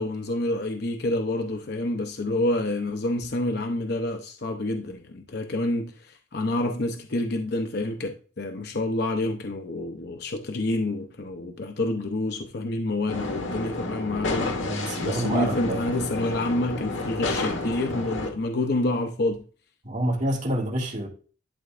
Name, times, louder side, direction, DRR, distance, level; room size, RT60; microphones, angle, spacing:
voice 1, 0.0-14.5 15.0-19.4, left 2 dB, 55° left, 0.7 m, -28 dB
sound 1, 13.1-18.3, left 2 dB, 75° left, 1.4 m, -30 dB
voice 2, 14.6-15.8 19.8-21.1, right 1 dB, 40° right, 2.1 m, -27 dB
11.5 x 4.7 x 2.5 m
head